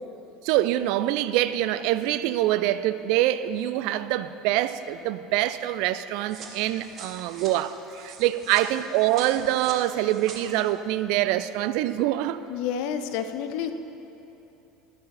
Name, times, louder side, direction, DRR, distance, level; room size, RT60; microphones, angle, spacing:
voice 1, 0.4-12.4, right 14 dB, 55° right, 14 dB, 0.4 m, -25 dB
sound 1, 6.3-10.4, right 5 dB, 40° right, 1.5 m, -43 dB
voice 2, 12.5-13.7, left 8 dB, 55° left, 9 dB, 0.7 m, -29 dB
12.5 x 11.0 x 4.3 m, 3.0 s
figure-of-eight pair, 70°, 0 cm